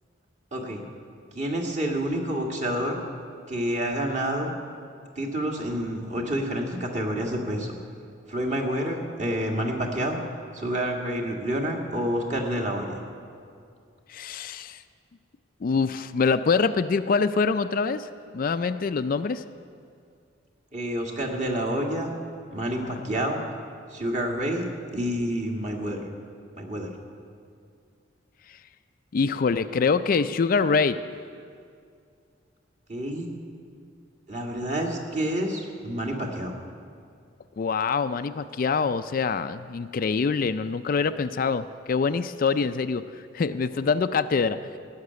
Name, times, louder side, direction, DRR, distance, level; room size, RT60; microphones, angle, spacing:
voice 1, 0.5-0.8 1.3-3.0 3.5-4.5 5.1-7.7 8.3-10.2 10.5-12.9 20.7-22.1 22.5-23.4 23.9-24.7 24.9-26.0 26.6-26.9 32.9-33.3 34.3-36.5, equal, 40° right, 1 dB, 1.7 m, -28 dB
voice 2, 14.1-14.8 15.6-19.4 29.1-31.0 37.6-43.0 43.3-44.6, left 5 dB, 45° left, 11 dB, 0.4 m, -25 dB
16.5 x 6.6 x 9.5 m, 2.3 s
head